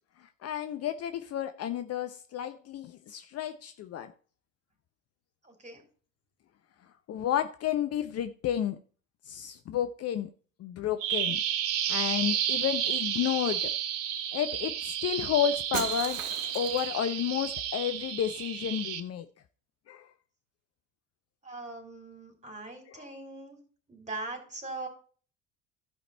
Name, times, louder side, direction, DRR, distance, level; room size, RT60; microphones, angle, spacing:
voice 1, 0.2-4.1 7.1-8.8 9.3-10.3 10.6-11.4 11.9-13.7 14.3-16.2 16.5-19.3 19.9-20.1 22.9-23.0, left 10 dB, 40° left, 0.7 m, -31 dB
voice 2, 5.4-5.8 21.4-23.6 23.9-24.9, right 2 dB, 20° right, 4.1 m, -41 dB
Bird vocalization bird call bird song, 11.0-19.0, right 10 dB, 55° right, 1.3 m, -32 dB
Shatter, 15.7-17.1, right 8 dB, 80° right, 1.0 m, -38 dB
14.5 x 5.2 x 4.2 m
figure-of-eight pair, 65°, 39 cm